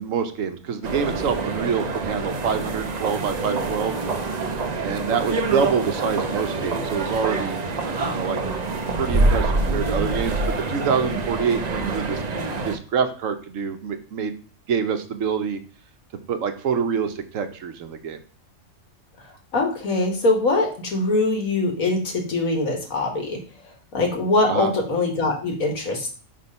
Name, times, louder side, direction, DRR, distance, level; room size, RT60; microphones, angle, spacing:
voice 1, 0.0-3.9 4.8-8.4 9.0-12.2 12.6-14.3 14.7-15.6 16.3-18.2 24.5-24.7, right 6 dB, 75° right, 8 dB, 1.1 m, -26 dB
sound 1, 0.8-12.8, right 3 dB, 40° right, 0.7 m, -26 dB
voice 2, 19.5-23.4 23.9-26.1, left 2 dB, 80° left, 2 dB, 2.0 m, -22 dB
5.9 x 3.7 x 5.3 m, 0.39 s
omnidirectional pair, 1.4 m